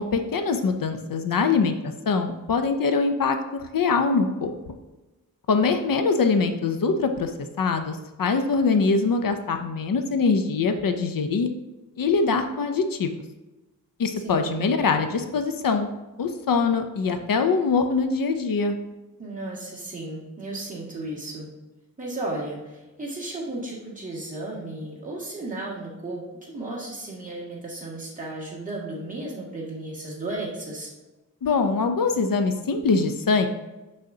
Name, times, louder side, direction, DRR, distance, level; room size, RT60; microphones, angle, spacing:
voice 1, 0.0-4.5 5.5-7.3 7.6-11.5 12.0-13.2 14.0-15.9 16.2-18.8 31.4-33.5, left 4 dB, 70° left, 7 dB, 0.6 m, -23 dB
voice 2, 14.2-14.6 19.2-21.5 22.0-30.9, right 2 dB, 20° right, -5 dB, 2.0 m, -34 dB
6.3 x 6.3 x 2.8 m, 1.1 s
wide cardioid pair, 130°, 35 cm